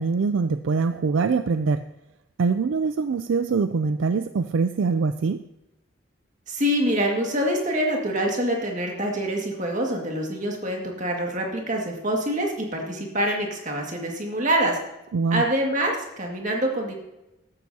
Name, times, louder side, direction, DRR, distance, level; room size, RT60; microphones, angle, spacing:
voice 1, 0.0-1.8 2.4-5.4 15.1-15.4, right 4 dB, 65° right, 10 dB, 0.4 m, -23 dB
voice 2, 6.5-14.8 15.3-16.9, right 1 dB, 35° right, 0 dB, 2.0 m, -25 dB
14.5 x 11.5 x 2.8 m, 0.93 s
head